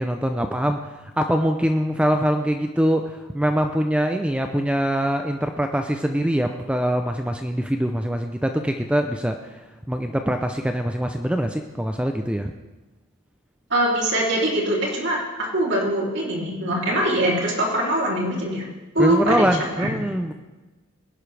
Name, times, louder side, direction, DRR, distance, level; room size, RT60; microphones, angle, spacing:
voice 1, 0.0-9.6 9.9-12.5 19.0-20.3, equal, 5° right, 5 dB, 0.5 m, -23 dB
voice 2, 13.7-18.6 18.9-19.5 19.8-20.0, right 1 dB, 55° right, -2 dB, 3.1 m, -22 dB
20.0 x 11.0 x 3.4 m, 1.1 s
head